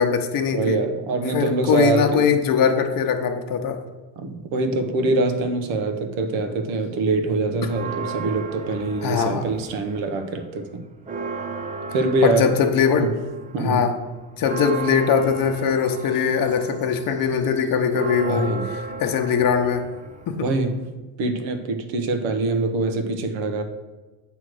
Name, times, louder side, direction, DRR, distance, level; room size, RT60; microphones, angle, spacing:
voice 1, 0.0-0.8 1.3-3.8 9.0-9.5 12.2-13.1 13.6-14.0 14.4-19.8 20.3-20.5, left 6 dB, 45° left, 5 dB, 0.9 m, -21 dB
voice 2, 0.5-2.3 4.2-10.8 11.9-12.5 12.9-13.1 13.5-13.9 18.3-18.7 20.4-20.8 21.2-23.6, right 2 dB, 85° right, 7 dB, 1.0 m, -24 dB
Church bell, 7.6-10.0 10.4-10.5 10.8-20.9, right 4 dB, 20° right, 0.3 m, -34 dB
7.7 x 3.3 x 6.3 m, 1.2 s
cardioid pair, 125°, 45 cm